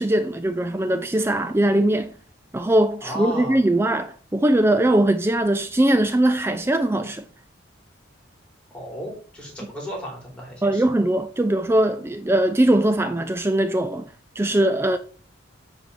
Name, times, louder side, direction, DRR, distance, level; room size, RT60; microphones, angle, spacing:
voice 1, 0.0-2.1 2.5-7.2 10.6-14.1 14.4-15.0, right 1 dB, 10° right, 0.4 m, -20 dB
voice 2, 3.0-3.6 8.7-10.8, equal, 5° left, 4.2 m, -34 dB
8.4 x 4.4 x 7.3 m
head